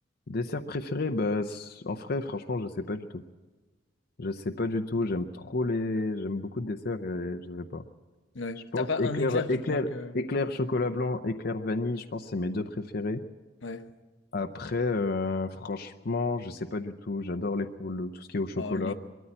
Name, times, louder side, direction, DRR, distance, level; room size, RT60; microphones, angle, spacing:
voice 1, 0.3-3.2 4.2-7.8 8.7-9.9 10.1-13.2 14.3-18.9, left 3 dB, 55° left, 0.7 m, -30 dB
voice 2, 8.3-10.2 13.6-13.9 18.6-18.9, left 3 dB, 85° left, 1.1 m, -34 dB
21.5 x 14.0 x 8.7 m
head